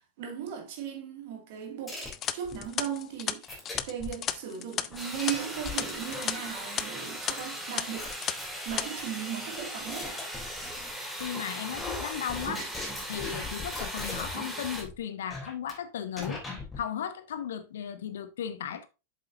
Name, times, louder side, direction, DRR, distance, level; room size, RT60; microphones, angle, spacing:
voice 1, 0.2-2.0 2.3-3.6 3.9-8.1 8.6-10.2, right 9 dB, 50° right, 2.3 m, -37 dB
sound 1, 1.9-2.7 3.5-4.3 4.9-6.7 7.4-7.5 8.0-9.0 9.5-10.9 11.2-11.5 11.8-14.4 14.7-14.9 15.3-15.7 16.2-16.8, left 3 dB, 15° left, 3.5 m, -39 dB
sound 2, 2.0-6.3 6.6-6.8 7.3-7.4 7.8-8.3 8.6-8.8, left 11 dB, 30° left, 0.5 m, -33 dB
sound 3, 5.0-14.8, right 1 dB, 5° right, 2.3 m, -38 dB
voice 2, 11.2-12.7 13.1-16.4 16.8-18.9, left 9 dB, 60° left, 0.9 m, -36 dB
7.7 x 7.4 x 2.7 m
figure-of-eight pair, 90°, 0 cm